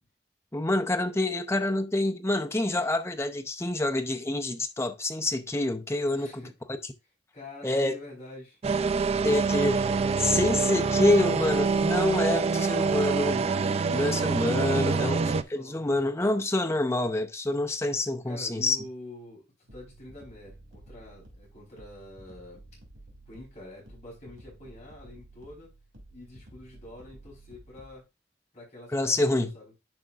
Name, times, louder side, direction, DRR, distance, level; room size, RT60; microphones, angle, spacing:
voice 1, 0.5-6.4 7.6-8.0 9.2-9.8 10.2-13.6 13.9-15.2 15.5-18.8 28.9-29.5, left 2 dB, 15° left, 0.6 m, -27 dB
voice 2, 6.1-6.5 7.3-8.6 13.6-16.4 18.2-19.4 19.7-22.6 23.3-25.7 26.1-28.0 28.5-29.7, left 1 dB, 40° left, 4.4 m, -46 dB
sound 1, 8.6-15.4, right 4 dB, 35° right, 0.3 m, -25 dB
sound 2, 19.7-28.0, right 1 dB, 90° right, 2.6 m, -52 dB
10.5 x 4.8 x 2.5 m
head